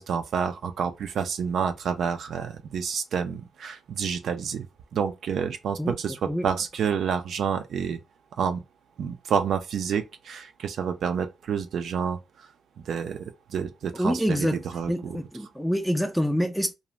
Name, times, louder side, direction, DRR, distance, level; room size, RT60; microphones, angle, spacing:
voice 1, 0.0-4.7 4.9-8.0 8.4-8.6 9.0-12.5 12.9-15.2, right 7 dB, 70° right, 0.3 m, -29 dB
voice 2, 13.9-14.6 14.9-16.7, equal, ahead, 0.4 m, -26 dB
2.5 x 2.0 x 2.9 m
cardioid pair, 120°, 0 cm